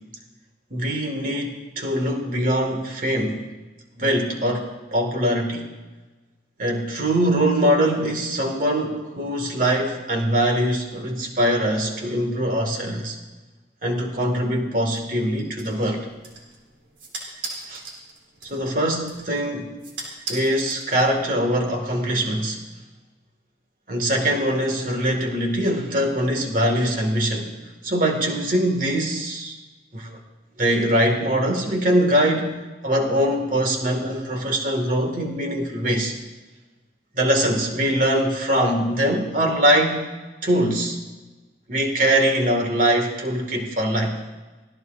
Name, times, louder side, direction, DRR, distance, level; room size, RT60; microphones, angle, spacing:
voice 1, 0.7-3.4 3.9-5.7 6.6-13.2 13.8-16.1 17.7-17.8 18.4-19.7 20.3-22.6 23.9-27.5 27.8-29.6 29.9-30.2 30.6-36.1 37.1-40.1 40.4-41.0 41.7-44.1, right 1 dB, 45° right, 3 dB, 2.2 m, -22 dB
sound 1, 14.9-21.4, right 3 dB, 75° right, 3.5 m, -39 dB
25.0 x 17.0 x 2.6 m, 1.2 s
head